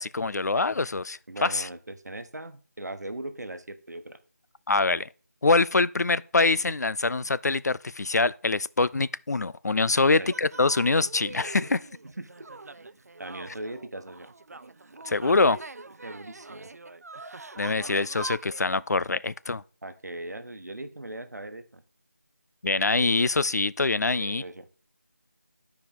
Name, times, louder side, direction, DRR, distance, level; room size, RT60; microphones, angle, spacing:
voice 1, 0.0-1.7 4.7-5.1 5.4-11.8 15.0-15.6 17.6-19.6 22.6-24.4, left 3 dB, 80° left, 0.4 m, -24 dB
voice 2, 1.3-4.2 9.9-10.3 12.0-12.3 12.8-14.3 16.0-16.7 19.8-21.8 24.0-24.7, right 1 dB, 85° right, 1.0 m, -39 dB
sound 1, 10.3-18.7, right 3 dB, 70° right, 0.4 m, -43 dB
11.5 x 4.8 x 3.5 m
figure-of-eight pair, 175°, 9 cm